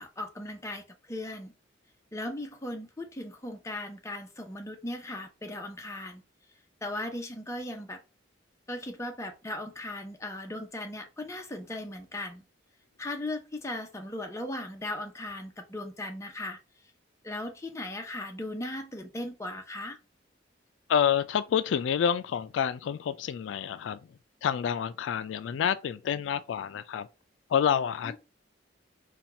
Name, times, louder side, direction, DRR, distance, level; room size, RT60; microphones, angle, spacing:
voice 1, 0.0-1.5 2.1-6.2 6.8-8.0 8.7-12.4 13.0-16.6 17.2-20.0, left 1 dB, 15° left, 0.7 m, -37 dB
voice 2, 20.9-24.0 24.4-27.1 27.5-28.2, left 8 dB, 85° left, 0.3 m, -28 dB
4.2 x 2.3 x 4.2 m
head